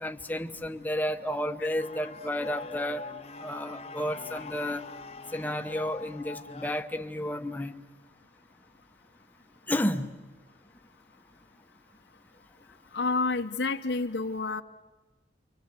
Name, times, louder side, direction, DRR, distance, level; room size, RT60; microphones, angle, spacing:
voice 1, 0.0-3.1 3.4-4.8 5.3-7.7 9.7-10.1, left 1 dB, 10° left, 8 dB, 0.9 m, -31 dB
sound 1, 1.8-6.8, left 3 dB, 35° left, 0.9 m, -43 dB
voice 2, 12.9-14.6, left 3 dB, 80° left, 5 dB, 0.9 m, -29 dB
28.5 x 25.0 x 8.2 m, 1.1 s
head